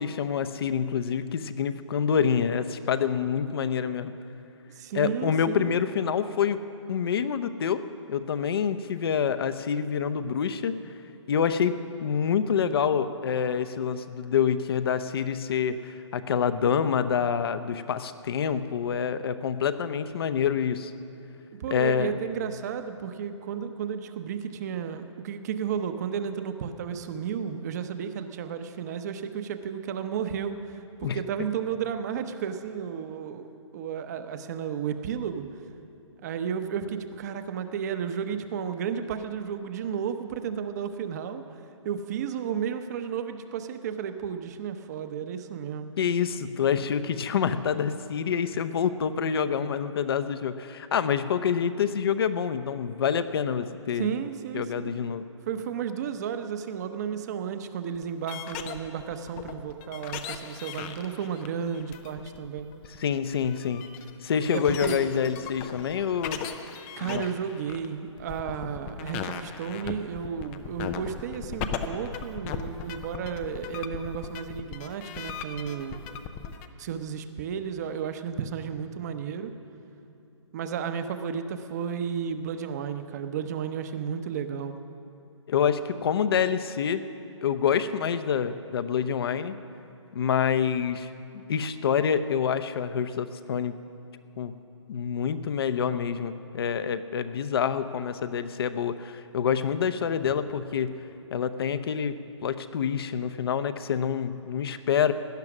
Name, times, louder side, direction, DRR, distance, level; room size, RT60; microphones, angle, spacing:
voice 1, 0.0-4.1 4.9-6.6 6.9-7.8 8.1-10.8 11.3-11.7 12.0-20.9 21.7-22.2 31.0-31.2 46.0-54.1 54.5-55.2 63.0-63.9 64.2-66.4 67.0-67.2 85.5-87.0 87.4-89.5 90.1-91.1 91.5-93.7 94.4-94.5 94.9-101.0 101.3-105.1, left 7 dB, 50° left, 12 dB, 0.7 m, -27 dB
voice 2, 4.8-5.8 21.6-35.5 36.2-41.4 41.8-45.9 53.9-54.9 55.5-62.7 64.5-65.0 67.0-76.0 76.8-79.5 80.5-84.7, right 7 dB, 35° right, 9 dB, 0.8 m, -33 dB
sound 1, 58.0-76.7, left 7 dB, 10° left, 0.3 m, -38 dB
17.5 x 10.5 x 6.1 m, 2.8 s
hypercardioid pair, 150°, 16 cm